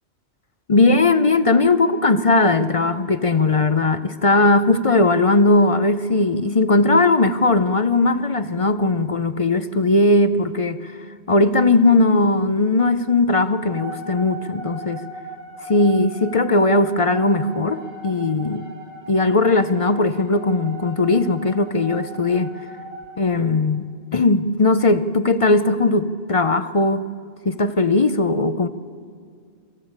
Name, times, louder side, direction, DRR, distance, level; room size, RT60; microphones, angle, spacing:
voice 1, 0.7-10.9 11.3-15.0 15.6-18.7 19.1-22.5 23.2-27.1 27.4-28.7, left 2 dB, 40° left, 12 dB, 0.6 m, -18 dB
sound 1, 13.7-23.2, right 2 dB, 80° right, 4.0 m, -38 dB
24.0 x 14.5 x 8.8 m, 2.2 s
omnidirectional pair, 1.2 m